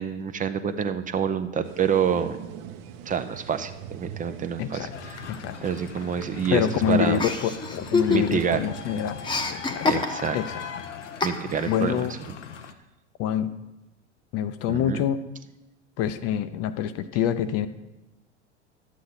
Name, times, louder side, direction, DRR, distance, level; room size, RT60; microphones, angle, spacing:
voice 1, 0.0-2.4 3.1-5.2 5.6-7.2 8.1-8.6 9.9-10.4 11.2-12.0 14.7-15.0, right 7 dB, 25° right, 10 dB, 0.6 m, -27 dB
sound 1, 1.6-9.5, right 9 dB, 50° right, 0.9 m, -42 dB
voice 2, 4.6-4.9 5.3-5.6 6.5-9.2 9.5-10.0 10.3-10.6 11.7-12.1 13.2-13.5 14.3-15.2 16.0-17.7, left 9 dB, 45° left, 12 dB, 0.6 m, -26 dB
sound 2, 4.9-12.7, left 7 dB, 85° left, 0.8 m, -40 dB
Chuckle chortle, 7.2-8.6 8.8-10.5 11.2-11.8, left 4 dB, 15° left, 0.9 m, -26 dB
12.0 x 8.3 x 4.0 m, 1.0 s
hypercardioid pair, 85°, 35 cm